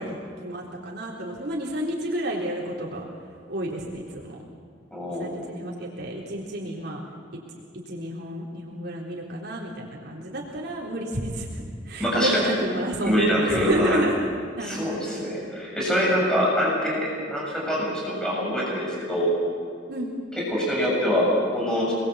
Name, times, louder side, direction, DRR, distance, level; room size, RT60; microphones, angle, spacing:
voice 1, 0.0-3.0 3.5-4.3 5.1-7.0 7.9-14.2 14.6-14.8 19.9-20.1, right 1 dB, 60° right, -3 dB, 3.9 m, -30 dB
voice 2, 4.9-5.4 12.0-12.5 13.0-14.1 14.6-19.3 20.4-21.9, equal, 5° left, -4 dB, 7.4 m, -24 dB
28.0 x 21.0 x 8.3 m, 2.3 s
head